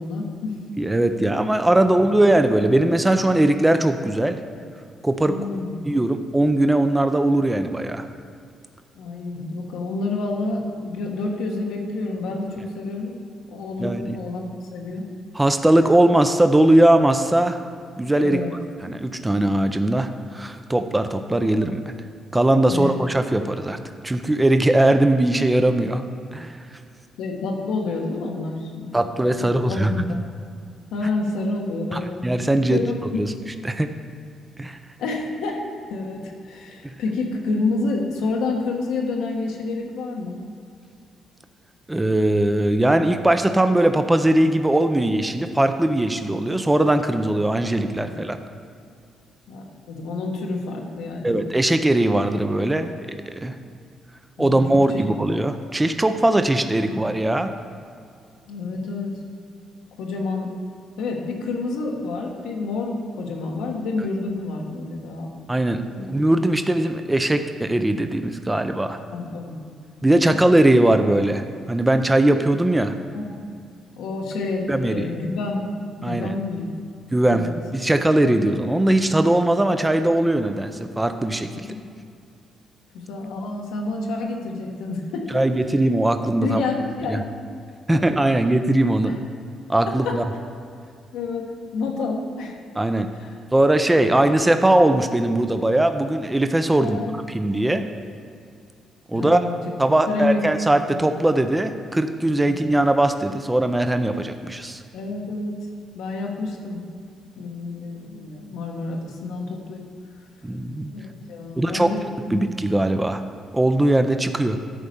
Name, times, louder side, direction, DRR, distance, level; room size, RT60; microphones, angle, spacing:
voice 1, 0.0-0.6 1.8-2.2 5.2-5.8 9.0-13.2 13.5-14.4 14.7-15.1 18.2-18.6 22.7-23.0 27.2-28.9 29.4-30.2 30.9-32.2 32.7-33.4 35.0-35.6 35.9-40.4 49.5-51.4 54.4-55.0 56.9-57.0 58.5-59.2 60.0-60.5 61.0-65.3 65.8-66.1 69.1-69.6 70.2-70.6 73.1-73.3 74.0-75.7 76.0-76.7 77.3-77.6 81.5-81.8 82.9-85.5 86.4-87.3 87.9-88.0 89.0-89.1 89.9-90.2 91.1-92.6 93.1-93.4 94.0-94.1 96.8-97.1 99.1-99.6 100.1-100.4 102.5-102.6 104.9-105.6 105.9-106.9 107.4-109.9 110.9-112.4, left 3 dB, 90° left, 1 dB, 1.3 m, -29 dB
voice 2, 0.8-4.4 5.0-5.4 5.9-8.1 13.8-14.2 15.3-17.6 18.0-18.4 18.8-21.9 22.3-23.8 24.0-26.0 26.3-26.6 28.9-29.9 31.9-32.8 33.2-33.3 33.6-33.9 34.6-34.8 41.9-48.4 51.2-53.0 53.3-53.5 54.4-57.5 65.5-65.8 66.1-69.0 70.0-72.9 74.7-75.1 76.0-76.3 77.1-81.5 85.3-86.6 87.1-87.2 87.9-89.1 89.7-90.2 92.8-93.1 93.5-97.0 97.3-97.8 99.1-99.4 99.8-104.8 110.4-110.9 111.6-111.9 112.3-113.2 113.5-114.6, right 1 dB, 10° right, 8 dB, 0.5 m, -20 dB
11.0 x 4.1 x 6.8 m, 2.3 s
cardioid pair, 90°, 0 cm